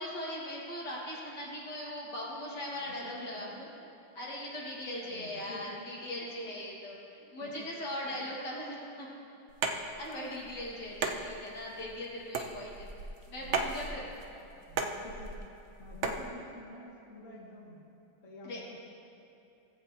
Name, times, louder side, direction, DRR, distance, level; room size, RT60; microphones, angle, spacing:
voice 1, 0.0-3.5 4.2-7.0 7.3-9.1 9.7-12.9 13.3-14.1 18.4-18.6, left 1 dB, 65° left, -5 dB, 2.5 m, -39 dB
voice 2, 2.7-3.8 4.9-5.8 7.1-7.7 8.1-8.3 13.4-14.1 14.4-15.4 15.8-17.9 18.2-18.8, left 1 dB, 45° left, -5 dB, 1.8 m, -50 dB
sound 1, 9.5-16.3, right 4 dB, 60° right, 0.7 m, -36 dB
18.5 x 7.8 x 2.9 m, 2.8 s
omnidirectional pair, 2.0 m